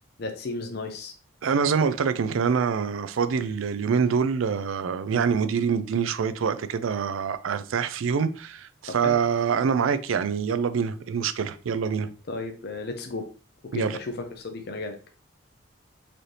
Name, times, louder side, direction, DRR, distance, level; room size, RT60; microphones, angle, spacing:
voice 1, 0.2-1.1 5.1-5.3 9.0-9.1 12.3-13.3 13.7-15.0, left 3 dB, 50° left, 0.5 m, -34 dB
voice 2, 1.4-12.1 13.7-14.0, right 6 dB, 85° right, 0.4 m, -25 dB
4.1 x 3.2 x 2.7 m
head